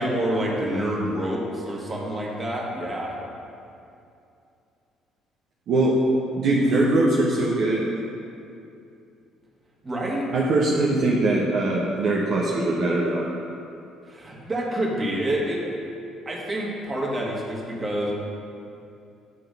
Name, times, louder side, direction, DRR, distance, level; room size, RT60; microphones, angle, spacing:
voice 1, 0.0-3.2 9.8-10.3 14.1-15.6 16.3-18.1, right 1 dB, 30° right, -3 dB, 1.8 m, -27 dB
voice 2, 6.4-7.8 10.3-13.2, right 2 dB, 55° right, -4 dB, 0.9 m, -21 dB
9.5 x 3.9 x 5.2 m, 2.6 s
hypercardioid pair, 50°, 0 cm